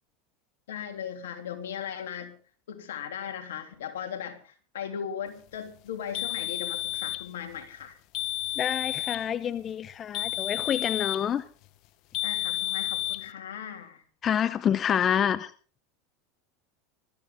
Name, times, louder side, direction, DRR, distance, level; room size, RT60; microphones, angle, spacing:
voice 1, 0.7-2.4 2.7-8.0 12.2-14.0 14.9-15.0, left 8 dB, 85° left, 3.4 m, -38 dB
sound 1, 6.1-7.3 8.1-9.3 10.1-11.3 12.1-13.3, left 17 dB, 55° left, 1.0 m, -31 dB
voice 2, 8.6-11.4 14.2-15.5, left 9 dB, 35° left, 0.8 m, -27 dB
21.0 x 14.0 x 3.8 m
supercardioid pair, 110°, 0 cm